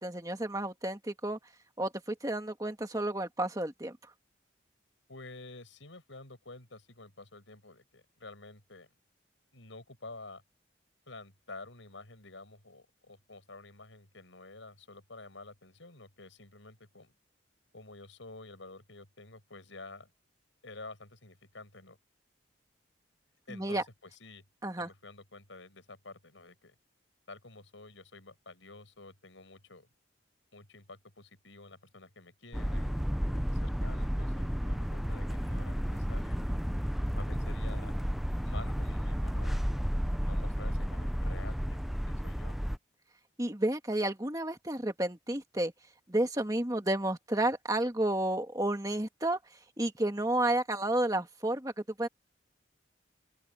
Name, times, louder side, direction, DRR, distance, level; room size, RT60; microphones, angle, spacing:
voice 1, 0.0-1.4 1.8-4.0 23.5-23.8 24.6-24.9 43.4-45.7 46.1-49.4 49.8-51.7 52.0-52.1, right 1 dB, 20° right, 1.9 m, -31 dB
voice 2, 5.1-8.9 9.5-10.4 11.1-17.1 17.7-20.1 20.6-22.0 23.5-24.4 24.8-26.7 27.3-29.9 30.5-36.6 37.1-37.9 38.4-39.7 40.2-41.8 42.1-42.7, left 2 dB, 85° left, 6.3 m, -50 dB
sound 1, 32.5-42.8, equal, ahead, 0.5 m, -32 dB
open air
head